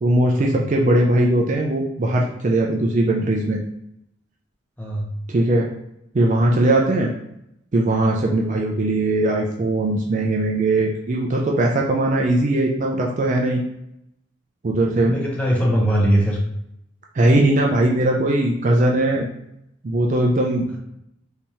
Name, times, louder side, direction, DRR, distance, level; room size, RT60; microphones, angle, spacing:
voice 1, 0.0-3.6 5.3-5.7 6.1-7.1 7.7-13.6 14.6-15.2 17.1-19.3 19.8-20.8, right 1 dB, 35° right, 0 dB, 0.3 m, -19 dB
voice 2, 4.8-5.1 15.0-16.4, equal, 5° left, -3 dB, 0.6 m, -20 dB
3.4 x 2.7 x 2.9 m, 0.80 s
head